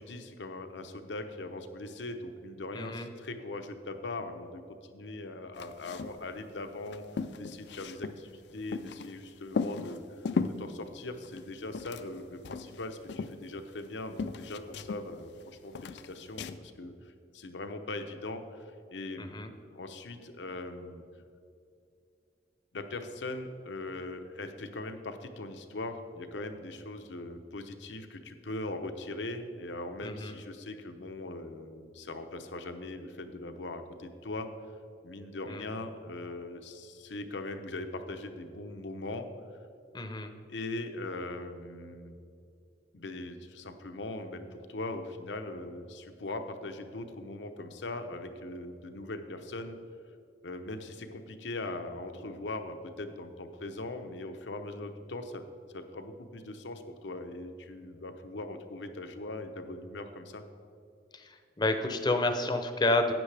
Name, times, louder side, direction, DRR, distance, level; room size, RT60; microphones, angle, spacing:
voice 1, 0.0-19.4 19.7-21.0 22.7-34.5 35.0-39.3 40.5-42.2 42.9-49.8 50.4-55.4 55.7-60.4, left 2 dB, 90° left, 7 dB, 0.8 m, -40 dB
voice 2, 2.7-3.1 19.2-19.5 30.0-30.3 35.5-35.6 39.9-40.3 61.1-63.1, left 2 dB, 25° left, 7 dB, 0.6 m, -30 dB
sound 1, 5.6-6.2 6.5-6.6 6.9-9.1 9.5-10.6 11.2-12.2 12.4-13.9 14.2-15.4 15.7-16.6, left 4 dB, 70° left, 0.4 m, -36 dB
12.5 x 9.0 x 3.4 m, 2.5 s
head